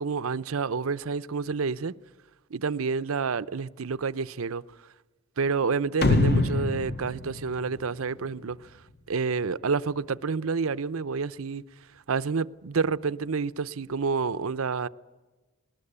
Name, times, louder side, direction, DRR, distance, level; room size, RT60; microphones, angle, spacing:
voice 1, 0.0-1.9 2.5-4.6 5.4-8.6 9.1-11.6 12.1-14.9, right 5 dB, 90° right, 0.7 m, -29 dB
sound 1, 6.0-8.5, left 2 dB, 50° left, 1.4 m, -25 dB
20.0 x 19.5 x 9.9 m
head